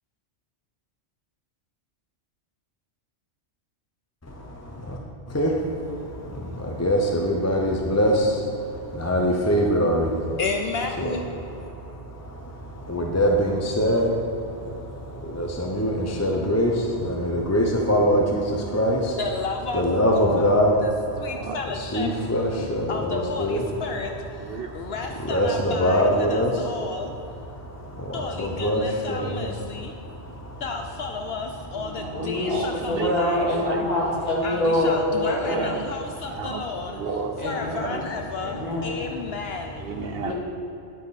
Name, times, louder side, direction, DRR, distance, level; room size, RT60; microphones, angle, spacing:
voice 1, 4.3-5.0 5.3-10.4 11.0-11.2 11.7-19.2 19.7-20.7 21.1-21.2 21.7-23.7 24.6-24.7 25.2-26.7 27.2-30.6, equal, 15° left, 0 dB, 0.7 m, -24 dB
voice 2, 10.4-11.3 19.2-19.9 20.1-20.5 20.8-22.1 22.9-24.2 24.7-27.1 28.1-29.9 30.6-33.5 34.4-37.0 37.4-39.8, left 4 dB, 65° left, 4 dB, 0.8 m, -32 dB
voice 3, 21.3-21.6 22.1-22.2 22.6-22.8 24.1-24.7 32.0-33.9 35.3-35.9 36.2-38.1 39.8-40.3, right 5 dB, 60° right, 5 dB, 0.8 m, -33 dB
voice 4, 31.8-35.6 37.4-38.0 38.4-38.9 40.2-40.3, left 1 dB, 35° left, -5 dB, 2.3 m, -25 dB
10.0 x 8.8 x 4.2 m, 2.9 s
omnidirectional pair, 1.2 m